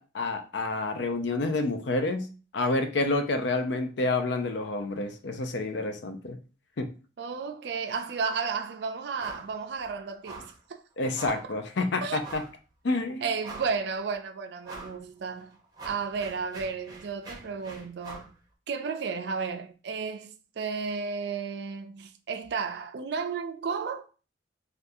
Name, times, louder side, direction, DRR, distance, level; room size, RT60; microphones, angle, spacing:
voice 1, 0.0-6.4 6.8-6.9 11.0-12.4 12.8-13.3, left 2 dB, 65° left, 0.5 m, -29 dB
voice 2, 7.2-10.8 11.3-11.6 12.0-12.2 13.2-15.6 15.8-18.4 18.7-24.1, right 5 dB, 60° right, 0.4 m, -33 dB
sound 1, 9.2-9.5 9.8-9.9 10.2-10.6 11.1-11.5 12.2-12.6 13.0-13.1 13.4-13.9 14.6-15.0 15.4-18.3, right 3 dB, 20° right, 0.7 m, -44 dB
3.5 x 2.3 x 2.6 m
head